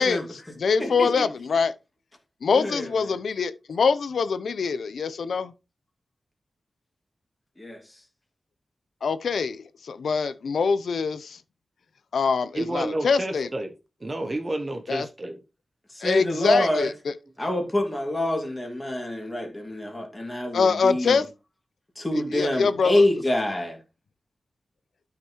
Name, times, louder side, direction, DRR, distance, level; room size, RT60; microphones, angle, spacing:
voice 1, 0.0-1.7 2.4-5.5 9.0-11.4 12.1-13.5 14.9-15.1 16.0-17.1 20.5-21.3 22.1-23.0, left 5 dB, 90° left, 0.7 m, -24 dB
voice 2, 0.8-1.2 2.5-2.8 7.6-7.8 15.9-16.9 17.4-21.2 22.0-23.8, left 1 dB, 15° left, 2.2 m, -26 dB
voice 3, 12.5-13.7 14.0-15.4, right 1 dB, 25° right, 0.9 m, -30 dB
12.0 x 5.9 x 3.1 m
wide cardioid pair, 170°, 0 cm